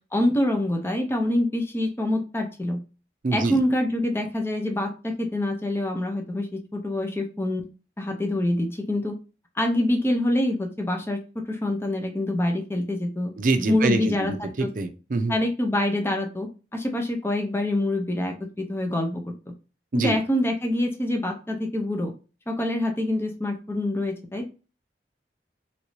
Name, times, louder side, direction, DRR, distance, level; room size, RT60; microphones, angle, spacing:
voice 1, 0.1-2.8 3.3-7.6 8.0-9.1 9.6-11.2 11.5-13.3 13.7-14.7 15.3-19.5 19.9-22.1 22.5-24.5, left 1 dB, 15° left, 3 dB, 0.5 m, -26 dB
voice 2, 3.2-3.6 13.4-15.4 19.9-20.2, right 3 dB, 45° right, 7 dB, 0.5 m, -25 dB
3.1 x 2.6 x 3.0 m, 0.33 s
head